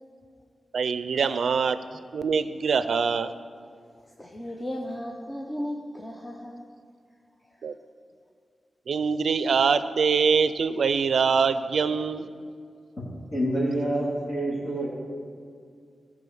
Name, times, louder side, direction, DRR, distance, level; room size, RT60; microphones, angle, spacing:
voice 1, 0.7-1.8 2.1-3.3 7.6-7.8 8.9-12.3, right 5 dB, 85° right, 13 dB, 0.4 m, -24 dB
voice 2, 4.0-6.7 7.5-7.6, equal, 15° left, 0 dB, 0.7 m, -36 dB
voice 3, 13.3-14.9, right 1 dB, 55° left, -7 dB, 2.9 m, -27 dB
14.5 x 4.8 x 5.4 m, 2.2 s
wide cardioid pair, 115°, 0 cm